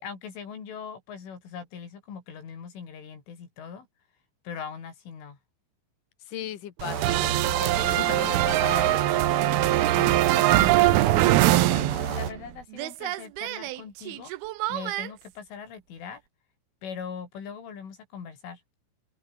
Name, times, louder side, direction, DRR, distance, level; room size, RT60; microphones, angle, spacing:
voice 1, 0.0-3.9 4.5-5.4 9.9-10.8 11.1-14.3 14.7-16.2 16.8-18.6, left 7 dB, 75° left, 7.6 m, -40 dB
voice 2, 6.3-9.1, left 11 dB, 55° left, 2.9 m, -37 dB
sound 1, 6.8-12.3, right 7 dB, 45° right, 2.7 m, -30 dB
sound 2, 7.0-12.5 12.7-15.1, right 17 dB, 85° right, 2.2 m, -23 dB
sound 3, 7.3-8.0 10.2-11.5, right 12 dB, 65° right, 3.7 m, -44 dB
open air
omnidirectional pair, 5.6 m